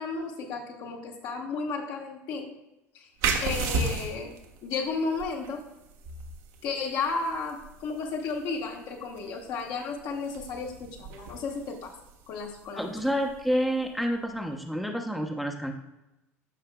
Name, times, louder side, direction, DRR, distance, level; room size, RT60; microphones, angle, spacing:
voice 1, 0.0-2.5 2.9-3.1 3.4-4.3 4.6-5.6 6.6-11.9 12.3-12.9, left 4 dB, 55° left, 1 dB, 1.6 m, -33 dB
sound 1, 3.2-14.5, right 4 dB, 60° right, 1.1 m, -36 dB
voice 2, 12.7-15.7, equal, ahead, 2 dB, 0.9 m, -29 dB
13.5 x 5.6 x 2.3 m, 0.93 s
hypercardioid pair, 70°, 8 cm